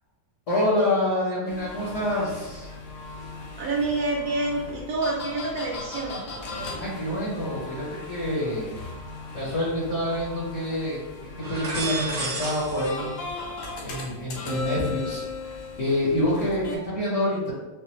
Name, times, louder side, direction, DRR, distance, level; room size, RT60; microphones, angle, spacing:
voice 1, 0.5-2.7 6.8-8.8 9.3-11.0 11.4-13.1 13.8-17.5, left 1 dB, 50° left, -8 dB, 1.1 m, -27 dB
sound 1, 1.4-16.8, left 3 dB, 65° left, 0.8 m, -38 dB
sound 2, 2.0-2.7 3.1-8.7 9.3-10.3 10.5-10.8 11.2-12.9 13.2-13.8, right 2 dB, 30° right, 0.8 m, -38 dB
voice 2, 3.6-6.2, right 2 dB, 70° right, -2 dB, 0.9 m, -27 dB
3.9 x 2.4 x 2.9 m, 1.2 s
omnidirectional pair, 2.0 m